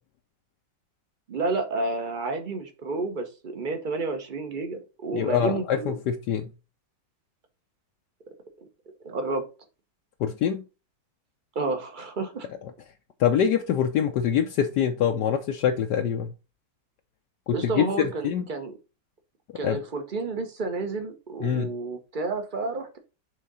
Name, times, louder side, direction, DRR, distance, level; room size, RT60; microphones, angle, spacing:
voice 1, 1.3-5.9 8.6-8.7 9.0-9.4 11.5-12.5 14.0-14.1 17.5-18.7 19.5-23.0, right 3 dB, 35° right, 7 dB, 0.9 m, -30 dB
voice 2, 5.1-6.5 10.2-10.6 13.2-16.3 17.5-18.5 19.6-19.8 21.4-21.7, left 8 dB, 75° left, 4 dB, 1.2 m, -24 dB
6.4 x 3.6 x 5.3 m, 0.31 s
omnidirectional pair, 1.9 m